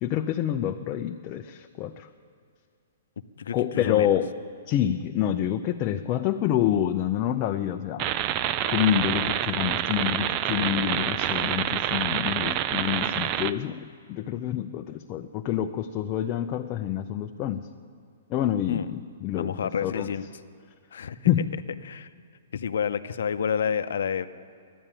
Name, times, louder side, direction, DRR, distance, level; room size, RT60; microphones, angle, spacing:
voice 1, 0.0-2.1 3.5-4.3 4.7-8.1 8.7-17.7 18.3-20.1 21.3-21.5, left 11 dB, 30° left, 5 dB, 0.6 m, -27 dB
voice 2, 3.4-4.1 18.7-18.9 19.3-20.2 20.9-21.2 21.8-22.1 22.5-24.3, left 7 dB, 75° left, 11 dB, 0.7 m, -29 dB
sound 1, 8.0-13.5, right 12 dB, 30° right, 0.4 m, -27 dB
12.5 x 11.0 x 8.9 m, 2.3 s
hypercardioid pair, 150°, 0 cm